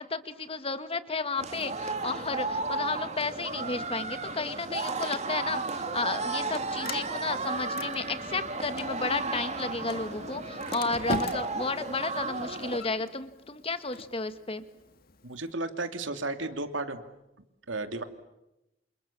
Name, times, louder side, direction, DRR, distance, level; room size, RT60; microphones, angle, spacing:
voice 1, 0.0-14.6, left 3 dB, 30° left, 11 dB, 1.6 m, -33 dB
sound 1, 1.4-12.8, right 3 dB, 35° right, 2.4 m, -34 dB
Sliding door, 5.5-15.5, left 3 dB, 50° left, 1.7 m, -42 dB
voice 2, 15.2-17.0 17.7-18.0, right 2 dB, 90° right, 7 dB, 2.7 m, -33 dB
28.5 x 28.5 x 7.3 m, 0.90 s
head